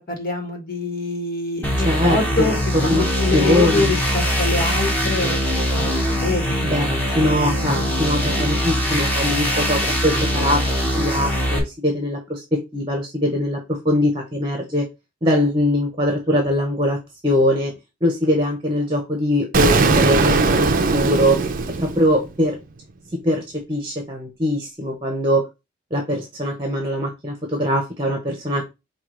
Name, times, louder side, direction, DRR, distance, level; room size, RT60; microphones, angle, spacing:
voice 1, 0.1-2.5 2.8-5.4 5.7-6.6 7.6-8.0 8.4-8.5, left 3 dB, 50° left, 3 dB, 1.4 m, -25 dB
sound 1, 1.6-11.6, equal, 10° left, 1.2 m, -22 dB
voice 2, 1.8-2.5 2.8-3.1 3.3-4.0 6.6-14.8 15.2-17.0 17.2-17.7 18.0-21.4 21.8-22.6 23.1-23.4 23.7-25.5 25.9-28.6, left 1 dB, 25° right, 3 dB, 0.9 m, -22 dB
Explosion, 19.5-22.4, right 4 dB, 45° right, 0.5 m, -19 dB
4.6 x 2.4 x 4.8 m, 0.25 s
head